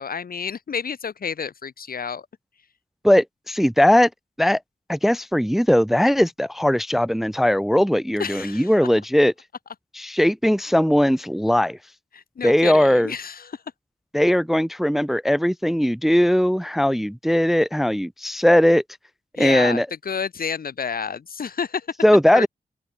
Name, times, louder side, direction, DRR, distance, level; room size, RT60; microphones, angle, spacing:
voice 1, 0.0-2.3 8.2-8.7 12.1-13.6 19.3-21.9 22.3-22.5, left 6 dB, 80° left, 2.4 m, -30 dB
voice 2, 3.0-4.1 4.4-4.6 4.9-9.3 10.0-11.8 12.4-13.1 14.1-18.8 19.4-19.9 22.0-22.5, equal, ahead, 0.4 m, -19 dB
open air
wide cardioid pair, 90°, 15 cm